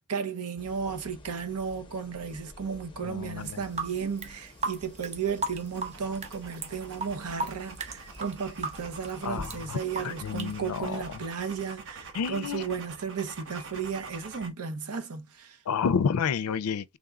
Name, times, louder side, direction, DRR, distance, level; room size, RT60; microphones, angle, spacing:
voice 1, 0.1-15.6, right 6 dB, 80° right, 0.8 m, -34 dB
sound 1, 0.6-11.3, left 1 dB, 20° left, 0.7 m, -49 dB
voice 2, 3.1-3.6 9.2-9.8 10.0-11.0 12.1-12.7 15.7-17.0, left 6 dB, 75° left, 0.4 m, -29 dB
sound 2, 3.4-3.9 4.2-7.1 7.4-9.6 10.0-10.5, right 3 dB, 30° right, 0.5 m, -35 dB
sound 3, 5.7-14.5, right 4 dB, 60° right, 1.0 m, -46 dB
3.6 x 2.3 x 3.7 m
head